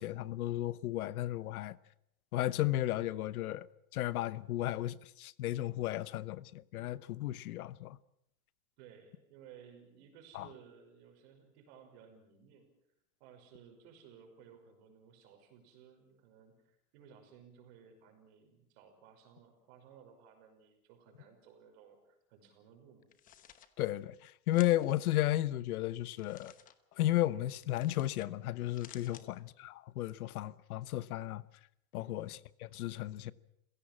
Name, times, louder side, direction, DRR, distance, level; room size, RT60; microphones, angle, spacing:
voice 1, 0.0-1.8 2.3-3.7 3.9-8.0 10.3-10.5 23.8-26.5 27.0-31.4 31.9-33.3, left 15 dB, 85° left, 1.1 m, -34 dB
voice 2, 8.8-12.7 13.2-23.1 29.1-29.5 32.0-32.4, right 7 dB, 45° right, 5.9 m, -58 dB
sound 1, 23.0-23.7 24.5-24.9 26.1-26.7 27.7-28.3 28.6-29.3, left 10 dB, 20° left, 1.1 m, -55 dB
28.0 x 17.0 x 7.4 m
supercardioid pair, 170°, 43 cm